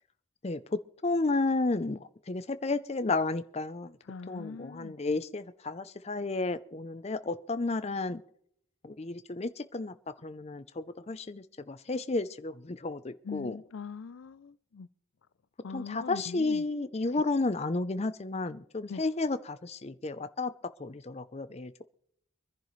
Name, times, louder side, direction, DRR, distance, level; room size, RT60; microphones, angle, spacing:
voice 1, 0.4-4.0 4.3-8.2 8.8-9.9 10.2-13.6 15.7-20.5 20.8-21.7, left 3 dB, 30° left, 0.6 m, -32 dB
voice 2, 4.0-5.0 13.2-14.9 15.6-16.7 17.1-17.2 18.9-19.0, left 5 dB, 75° left, 0.5 m, -42 dB
24.5 x 10.5 x 3.2 m
head